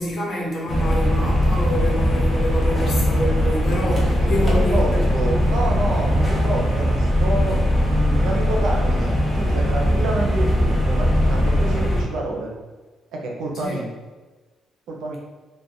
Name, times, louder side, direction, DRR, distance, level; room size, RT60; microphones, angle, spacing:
voice 1, 0.0-5.8 13.6-13.8, equal, 50° left, -4 dB, 1.0 m, -27 dB
sound 1, 0.7-12.0, equal, 20° left, 0.8 m, -20 dB
voice 2, 4.2-7.6 7.9-12.5 13.1-13.9 14.9-15.2, right 2 dB, 80° right, 0 dB, 0.5 m, -28 dB
2.4 x 2.1 x 3.6 m, 1.3 s
cardioid pair, 90°, 0 cm